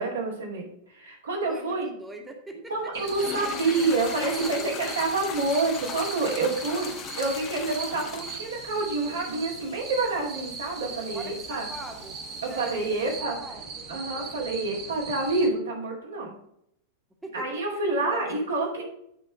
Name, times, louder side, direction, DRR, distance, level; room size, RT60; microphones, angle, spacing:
voice 1, 0.0-1.9 2.7-6.9 7.2-11.7 12.4-13.4 13.9-16.3 17.3-18.8, right 3 dB, 70° right, -3 dB, 2.5 m, -28 dB
voice 2, 1.4-2.7 3.6-4.9 6.7-7.0 11.1-13.6 17.2-17.5 18.0-18.8, right 1 dB, 10° right, 2 dB, 1.5 m, -43 dB
sound 1, 2.9-15.5, right 4 dB, 40° right, 1.6 m, -40 dB
sound 2, 3.0-13.2, left 7 dB, 35° left, 1.0 m, -41 dB
9.5 x 4.8 x 4.9 m, 0.74 s
figure-of-eight pair, 90°, 0 cm